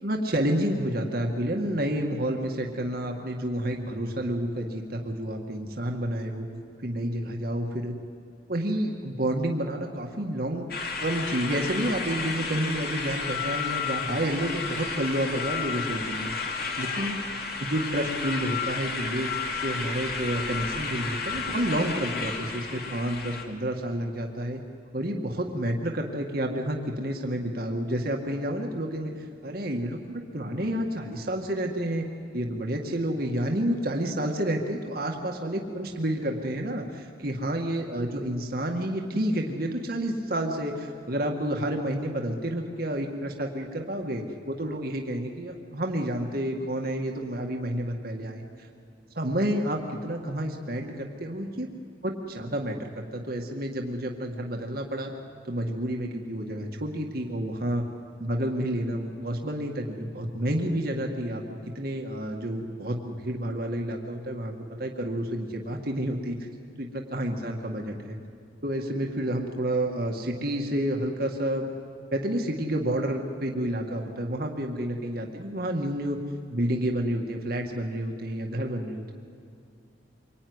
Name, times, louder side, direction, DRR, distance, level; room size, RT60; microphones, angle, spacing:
voice 1, 0.0-6.5 6.8-7.9 8.5-10.7 11.0-16.3 16.8-17.2 17.6-24.6 24.9-32.0 32.3-48.4 49.2-51.7 52.0-55.1 55.5-57.8 58.2-64.5 64.8-66.4 66.8-68.2 68.6-71.8 72.1-76.2 76.5-79.2, right 1 dB, 55° right, 2 dB, 2.0 m, -30 dB
sound 1, 10.7-23.4, left 4 dB, 60° left, 2.7 m, -32 dB
25.5 x 23.5 x 9.7 m, 2.4 s
head